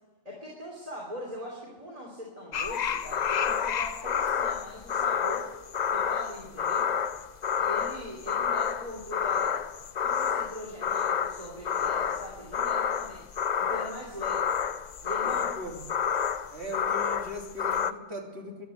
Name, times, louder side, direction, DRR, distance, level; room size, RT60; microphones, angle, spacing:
voice 1, 0.2-5.5 5.9-6.9 7.6-9.6 10.0-13.2 13.6-14.5 15.0-15.5, left 1 dB, 30° right, -3 dB, 3.1 m, -41 dB
sound 1, 2.5-17.9, left 7 dB, 50° left, 0.5 m, -29 dB
voice 2, 15.2-15.8 16.5-18.7, left 1 dB, 55° right, -1 dB, 3.3 m, -39 dB
15.0 x 11.5 x 8.1 m, 1.3 s
omnidirectional pair, 1.3 m